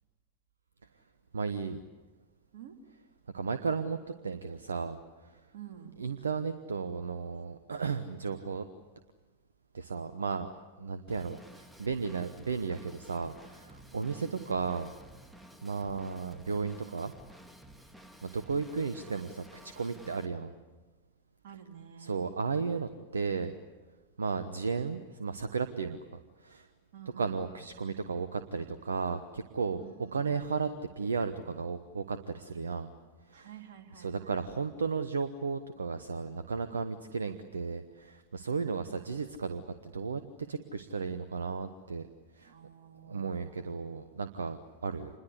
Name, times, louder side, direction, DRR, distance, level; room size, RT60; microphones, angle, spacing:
voice 1, 1.3-1.8 3.3-4.0 4.2-5.0 6.0-8.6 9.7-10.5 10.8-14.9 15.6-17.1 18.2-20.5 22.0-23.5 24.2-26.0 26.4-26.7 27.2-30.7 31.0-32.9 33.3-33.5 33.9-40.2 40.5-42.1 42.4-42.5 43.1-45.1, right 5 dB, 70° right, 11 dB, 1.0 m, -34 dB
voice 2, 5.5-5.9 13.9-14.3 21.4-22.1 26.9-27.6 29.8-30.6 33.3-34.4 42.4-44.1, right 9 dB, 55° right, 3 dB, 3.4 m, -50 dB
Drum kit / Drum, 11.1-20.3, equal, 5° right, 2.0 m, -53 dB
27.5 x 21.5 x 8.2 m, 1.3 s
figure-of-eight pair, 90°, 0 cm